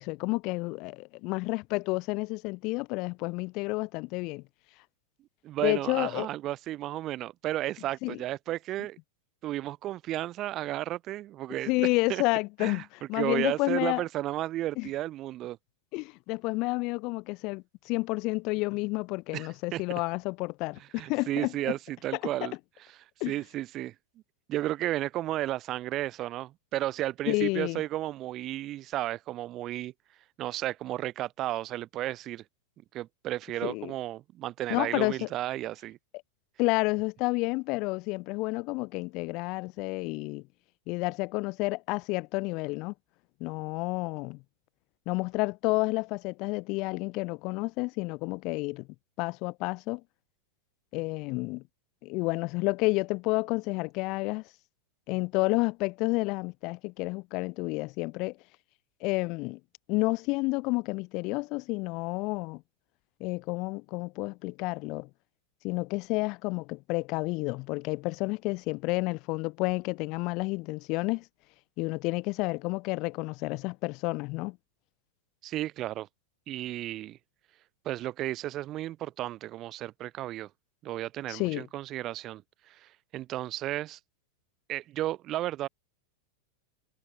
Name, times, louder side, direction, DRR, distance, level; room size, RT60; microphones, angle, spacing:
voice 1, 0.0-4.4 5.6-6.3 8.0-8.2 11.7-14.0 14.8-14.9 15.9-21.5 22.4-22.5 23.2-23.3 27.3-27.8 33.6-33.9 34.7-35.3 36.6-40.4 40.9-42.9 43.4-44.4 45.1-48.9 49.2-50.0 50.9-51.6 52.0-54.4 55.1-58.4 59.0-59.6 59.9-62.6 63.2-65.1 65.6-71.2 71.8-74.6 81.3-81.7, left 25 dB, 40° left, 2.3 m, -30 dB
voice 2, 5.4-9.0 9.4-11.7 12.1-12.2 12.6-12.8 13.1-15.6 19.3-19.8 21.0-22.5 23.3-23.9 24.5-29.9 30.4-32.4 32.9-36.0 75.4-76.1 76.5-77.2 77.8-80.5 80.8-82.4 82.7-84.0 84.7-85.7, right 14 dB, 35° right, 2.6 m, -33 dB
figure-of-eight pair, 90°, 0 cm